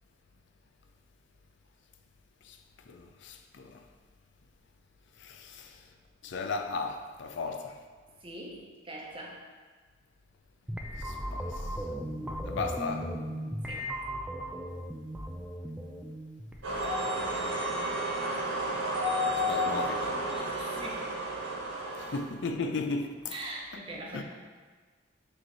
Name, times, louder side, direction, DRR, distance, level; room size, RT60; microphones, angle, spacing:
voice 1, 2.9-3.8 5.2-5.8 6.2-7.8 11.0-11.8 12.4-13.1 19.3-20.2 22.0-23.3 24.1-24.2, left 3 dB, 60° left, 6 dB, 0.4 m, -36 dB
voice 2, 8.2-9.4 13.7-13.9 20.3-21.1 23.3-24.2, right 1 dB, 25° right, -2 dB, 0.9 m, -42 dB
sound 1, 10.7-17.6, equal, 5° right, 0.3 m, -37 dB
sound 2, 16.6-22.2, equal, 70° right, 1.5 m, -31 dB
6.3 x 3.2 x 5.4 m, 1.5 s
head